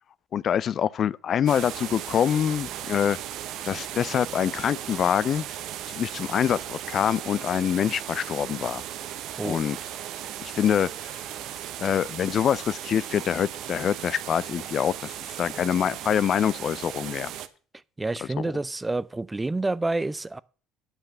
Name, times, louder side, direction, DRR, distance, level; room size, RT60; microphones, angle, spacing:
voice 1, 0.3-3.2 3.6-5.5 5.9-8.8 9.4-9.8 10.4-11.2 11.8-17.3 18.4-18.5, left 9 dB, 50° left, 0.4 m, -25 dB
sound 1, 1.5-17.5, right 11 dB, 65° right, 0.8 m, -37 dB
voice 2, 18.0-20.4, right 2 dB, 15° right, 0.5 m, -28 dB
9.0 x 5.9 x 8.2 m
hypercardioid pair, 70°, 0 cm